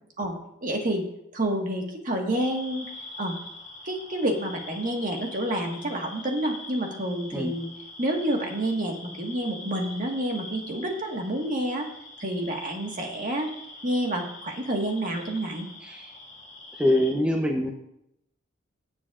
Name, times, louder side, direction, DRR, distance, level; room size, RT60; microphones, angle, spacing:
voice 1, 0.6-1.0 1.3-2.9 3.2-3.3 3.8-7.7 8.0-11.9 12.2-13.5 13.8-15.7, right 1 dB, 45° right, 1 dB, 1.6 m, -28 dB
sound 1, 2.3-17.1, left 2 dB, 40° left, 2.5 m, -43 dB
voice 2, 16.8-17.7, left 1 dB, 5° right, 1 dB, 0.7 m, -24 dB
16.5 x 7.4 x 2.5 m, 0.80 s
head